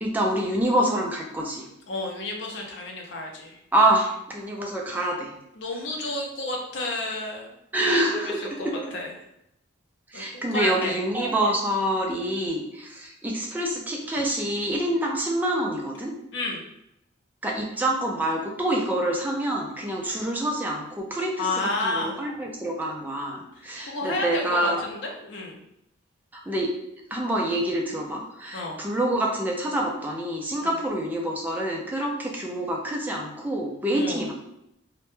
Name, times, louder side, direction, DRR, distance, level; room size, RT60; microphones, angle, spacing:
voice 1, 0.0-1.7 3.7-5.3 7.7-8.7 10.1-16.1 17.4-24.8 26.5-26.7 27.1-34.3, right 1 dB, 10° right, -1 dB, 0.3 m, -26 dB
voice 2, 1.9-3.6 5.6-7.5 8.1-9.1 10.1-11.0 11.4-11.5 16.3-16.7 20.0-20.2 21.4-22.3 23.8-25.6 28.5-28.8 30.6-30.7 33.9-34.2, left 2 dB, 60° left, 0 dB, 0.5 m, -31 dB
2.1 x 2.1 x 3.0 m, 0.80 s
head